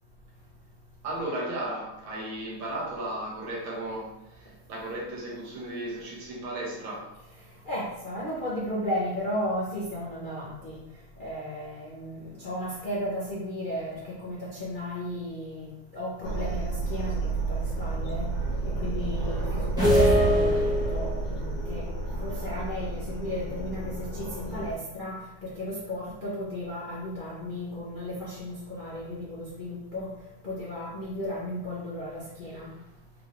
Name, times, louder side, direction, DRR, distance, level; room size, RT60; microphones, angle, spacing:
voice 1, 1.0-7.1 32.6-32.9, right 1 dB, 70° right, -3 dB, 1.7 m, -35 dB
voice 2, 7.6-10.8 11.2-18.3 18.6-21.8 22.2-30.1 30.4-32.7, left 1 dB, 45° left, -8 dB, 0.6 m, -35 dB
sound 1, 16.2-24.7, right 3 dB, 85° left, 1.8 m, -31 dB
sound 2, 19.8-21.3, equal, 5° right, 0.7 m, -22 dB
5.0 x 3.3 x 2.5 m, 0.87 s
omnidirectional pair, 2.2 m